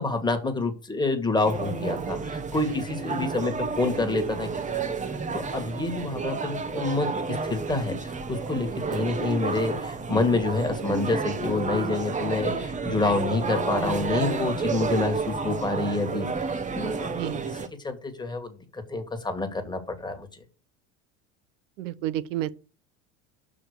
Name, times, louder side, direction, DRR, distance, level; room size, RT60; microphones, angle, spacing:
voice 1, 0.0-4.5 4.9-5.0 5.3-16.3 16.8-17.6 17.8-20.3, left 3 dB, 10° left, 1.8 m, -28 dB
sound 1, 1.4-17.7, right 4 dB, 20° right, 0.9 m, -30 dB
voice 2, 21.8-22.5, right 13 dB, 80° right, 0.8 m, -30 dB
5.9 x 5.1 x 6.6 m
supercardioid pair, 95°, 38 cm